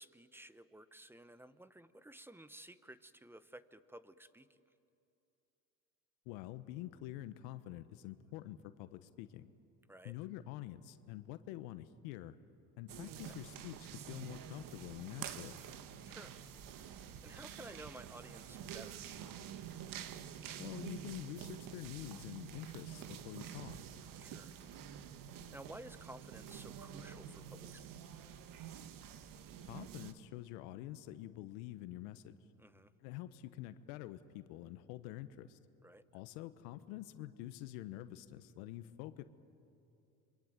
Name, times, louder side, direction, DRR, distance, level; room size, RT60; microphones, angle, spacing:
voice 1, 0.0-4.6 9.9-10.2 13.3-13.4 16.0-16.3 17.2-19.3 24.2-24.6 25.5-27.9 32.6-32.9 35.8-36.1, right 1 dB, 5° right, 14 dB, 1.0 m, -54 dB
voice 2, 6.3-9.5 10.0-12.3 12.8-15.6 20.6-23.8 29.7-32.4 33.0-35.6 36.1-39.2, left 14 dB, 80° left, 12 dB, 1.2 m, -47 dB
sound 1, 12.9-30.1, right 9 dB, 55° right, 1.8 m, -48 dB
27.0 x 24.0 x 9.1 m, 2.7 s
supercardioid pair, 95°, 39 cm